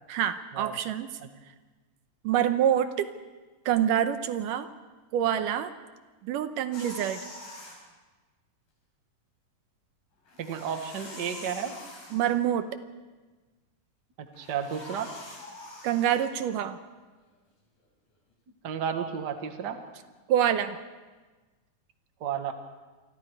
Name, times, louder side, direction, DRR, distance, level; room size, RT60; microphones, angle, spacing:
voice 1, 0.1-1.1 2.2-3.1 3.7-4.7 5.1-5.7 6.2-7.2 12.1-12.7 15.8-16.8 20.3-20.8, right 10 dB, 80° right, 10 dB, 2.4 m, -26 dB
sound 1, 6.7-7.8 10.3-12.4 14.3-16.3, left 2 dB, 80° left, 6.7 m, -45 dB
voice 2, 10.4-11.8 14.2-15.1 18.6-19.8 22.2-22.5, right 8 dB, 45° right, 6 dB, 1.5 m, -32 dB
28.5 x 23.5 x 4.7 m, 1.3 s
omnidirectional pair, 3.9 m